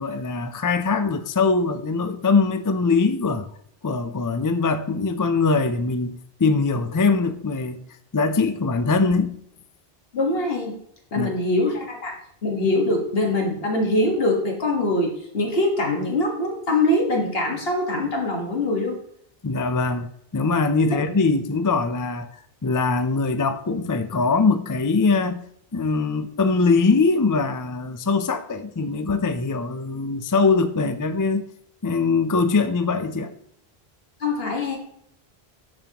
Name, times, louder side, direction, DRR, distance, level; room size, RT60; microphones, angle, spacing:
voice 1, 0.0-3.5 3.8-7.8 8.1-9.4 11.1-11.3 19.4-25.4 25.7-31.4 31.8-33.3, left 4 dB, 30° left, 9 dB, 0.4 m, -22 dB
voice 2, 10.1-10.7 11.1-12.1 12.4-19.0 34.2-34.8, left 2 dB, 70° left, 0 dB, 1.8 m, -23 dB
10.5 x 7.1 x 2.9 m, 0.69 s
omnidirectional pair, 1.0 m